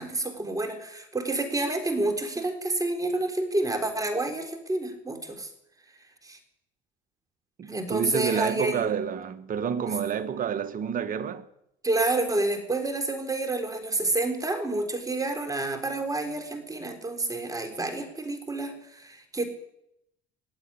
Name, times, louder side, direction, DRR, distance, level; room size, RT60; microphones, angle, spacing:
voice 1, 0.0-5.5 6.2-6.4 7.7-8.9 9.9-10.0 11.8-19.5, right 2 dB, 20° right, 3.7 m, -29 dB
voice 2, 7.6-11.5, right 8 dB, 45° right, 1.3 m, -29 dB
18.0 x 8.1 x 9.8 m
supercardioid pair, 80°, 19 cm